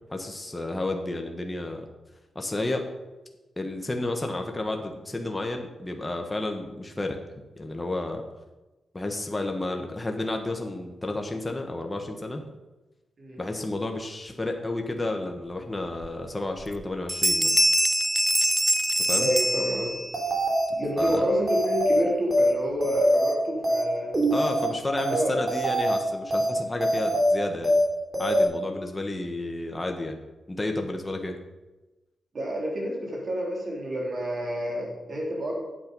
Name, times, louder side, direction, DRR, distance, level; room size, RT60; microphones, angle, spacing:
voice 1, 0.1-1.9 2.3-2.9 3.6-7.2 7.6-8.2 8.9-12.4 13.4-17.6 19.1-19.3 21.0-21.2 24.3-27.7 28.2-30.2 30.5-31.4, left 2 dB, 15° left, 3 dB, 1.2 m, -31 dB
Bell, 16.0-16.1 16.6-16.8 17.1-20.2, right 1 dB, 5° right, 0.5 m, -24 dB
voice 2, 19.2-19.9 20.8-24.2 25.1-25.4 32.3-35.6, equal, 50° right, -2 dB, 3.2 m, -29 dB
sound 1, 20.1-20.6 21.0-21.1 21.5-22.0 22.3-22.5 22.8-23.3 23.6-23.8 24.1-24.6 25.0-25.1 25.5-26.0 26.3-26.5 26.8-27.3 27.6-27.8 28.1-28.4, equal, 35° right, 3.0 m, -23 dB
8.8 x 7.8 x 5.3 m, 1.1 s
cardioid pair, 85°, 0 cm